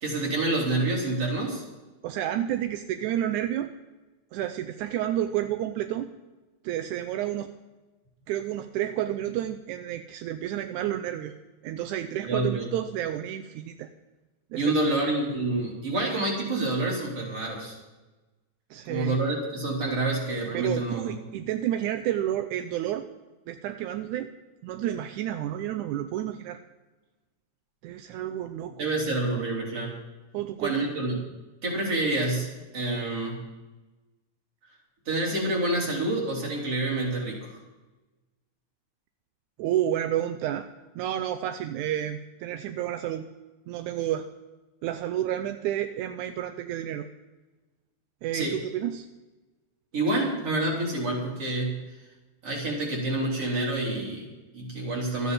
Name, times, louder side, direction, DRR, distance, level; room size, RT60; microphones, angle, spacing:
voice 1, 0.0-1.6 12.2-12.6 14.5-17.7 18.9-21.1 28.8-30.0 30.6-31.3 31.6-32.5 32.7-33.4 35.1-37.6 48.3-48.6 49.9-51.8 52.4-55.3, right 2 dB, 50° right, -3 dB, 4.3 m, -28 dB
voice 2, 2.0-3.7 4.3-6.1 6.6-7.5 8.3-11.3 11.6-13.9 14.5-14.8 18.7-19.2 20.5-23.1 23.5-24.3 24.6-26.6 27.8-28.9 30.3-30.8 39.6-40.7 41.0-43.3 43.7-44.3 44.8-47.1 48.2-49.1, right 11 dB, 85° right, 8 dB, 2.1 m, -30 dB
13.0 x 9.5 x 7.2 m, 1.1 s
omnidirectional pair, 3.5 m